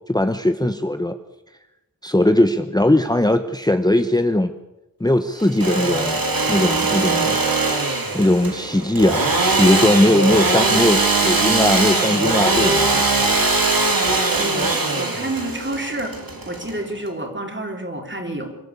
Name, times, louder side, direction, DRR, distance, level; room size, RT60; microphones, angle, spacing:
voice 1, 0.1-1.2 2.0-4.5 5.0-6.2 6.5-7.4 8.1-9.3 9.6-13.1, left 1 dB, 10° left, 8 dB, 1.0 m, -19 dB
Engine / Sawing, 5.4-17.1, right 3 dB, 85° right, 3.1 m, -20 dB
voice 2, 14.4-16.2 16.5-18.7, right 1 dB, 35° right, 3 dB, 3.9 m, -29 dB
26.0 x 13.0 x 8.3 m, 0.95 s
wide cardioid pair, 70°, 34 cm